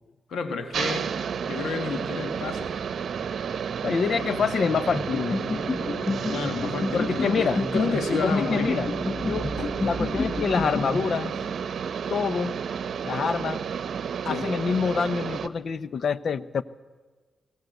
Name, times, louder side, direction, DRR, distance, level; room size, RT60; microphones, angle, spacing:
voice 1, 0.3-1.1 1.5-2.7 4.2-4.4 6.3-8.7 14.3-14.5, left 4 dB, 80° left, 6 dB, 1.9 m, -31 dB
sound 1, 0.7-15.5, right 7 dB, 70° right, 0.8 m, -31 dB
sound 2, 2.5-10.8, right 4 dB, 45° right, 0.9 m, -42 dB
voice 2, 3.8-5.4 6.9-7.6 8.2-11.3 12.1-12.5 13.0-13.6 14.3-16.6, left 6 dB, 65° left, 16 dB, 0.8 m, -27 dB
sound 3, 4.9-11.6, left 3 dB, 40° left, 1.2 m, -30 dB
20.5 x 18.5 x 8.2 m, 1.3 s
cardioid pair, 65°, 0 cm